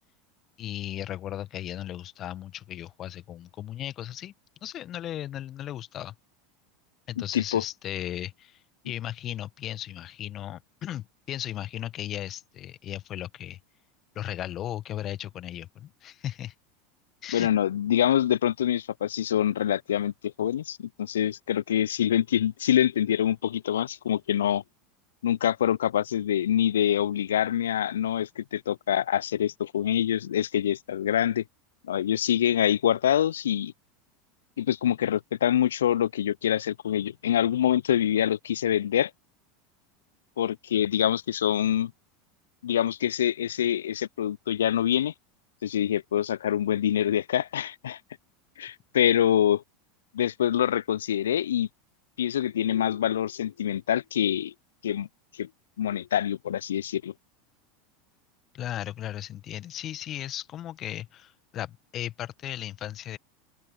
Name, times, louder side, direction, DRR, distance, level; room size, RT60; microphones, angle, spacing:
voice 1, 0.6-4.3 4.6-6.1 7.1-13.6 14.1-16.5 17.2-17.5 58.5-63.2, left 12 dB, 40° left, 1.4 m, -36 dB
voice 2, 17.3-24.6 25.2-31.4 31.9-33.7 34.6-39.1 40.4-41.9 42.6-45.1 45.6-48.0 48.6-49.6 50.1-51.7 52.2-54.5 54.8-55.1 55.3-55.5 55.8-57.1, left 10 dB, 80° left, 0.3 m, -25 dB
open air
hypercardioid pair, 85°, 0 cm